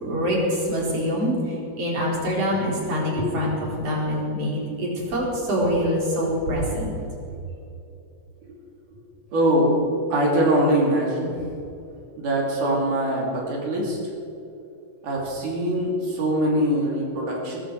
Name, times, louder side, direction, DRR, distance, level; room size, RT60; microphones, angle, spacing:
voice 1, 0.0-6.9, equal, 40° right, -3 dB, 4.8 m, -25 dB
voice 2, 3.1-3.5 9.3-9.8 10.1-11.4 12.2-14.0 15.0-17.6, right 1 dB, 60° right, -2 dB, 4.2 m, -23 dB
21.0 x 14.5 x 4.7 m, 2.8 s
omnidirectional pair, 4.2 m